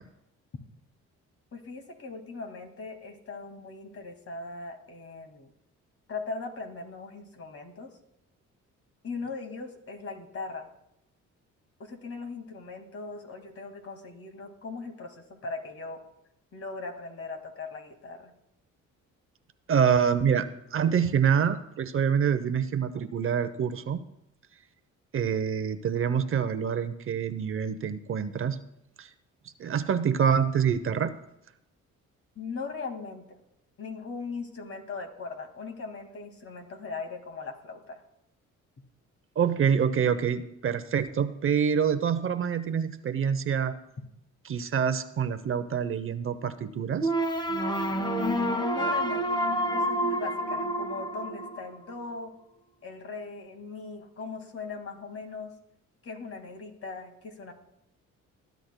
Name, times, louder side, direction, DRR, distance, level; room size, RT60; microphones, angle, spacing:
voice 1, 1.5-5.5 6.1-7.9 9.0-10.7 11.8-16.0 16.5-18.3 32.4-33.3 33.8-38.0 48.2-49.4 49.7-52.3 52.8-55.5 56.0-57.5, left 4 dB, 50° left, 4 dB, 2.0 m, -39 dB
voice 2, 19.7-24.0 25.1-28.6 29.0-29.1 29.6-31.1 39.4-43.7 44.5-47.1, right 7 dB, 45° right, 11 dB, 0.7 m, -26 dB
sound 1, 47.0-52.0, right 1 dB, 15° left, 1.1 m, -28 dB
21.0 x 10.5 x 2.2 m, 0.84 s
cardioid pair, 90°, 30 cm